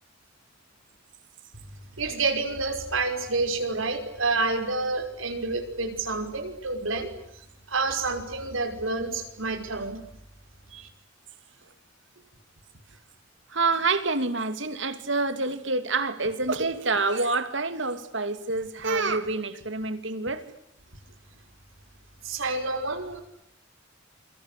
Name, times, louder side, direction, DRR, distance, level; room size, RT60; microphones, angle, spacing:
voice 1, 2.0-7.1 7.7-10.0 10.7-10.9 22.2-23.2, right 3 dB, 85° right, 6 dB, 5.7 m, -28 dB
voice 2, 13.5-20.4, right 3 dB, 65° right, 10 dB, 2.9 m, -27 dB
28.5 x 24.5 x 8.5 m, 0.76 s
head